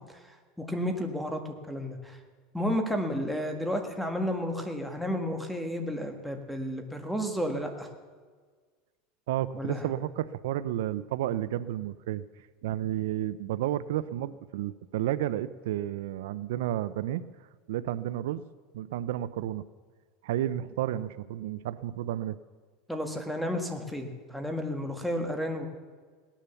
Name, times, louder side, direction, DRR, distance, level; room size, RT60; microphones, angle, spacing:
voice 1, 0.0-2.2 2.5-7.9 9.6-9.9 22.9-25.7, equal, ahead, 5 dB, 1.6 m, -32 dB
voice 2, 9.3-12.2 12.6-17.2 17.7-18.4 18.7-19.6 20.2-22.4, right 12 dB, 85° right, 15 dB, 0.5 m, -31 dB
18.0 x 10.0 x 7.0 m, 1.5 s
supercardioid pair, 140°, 0 cm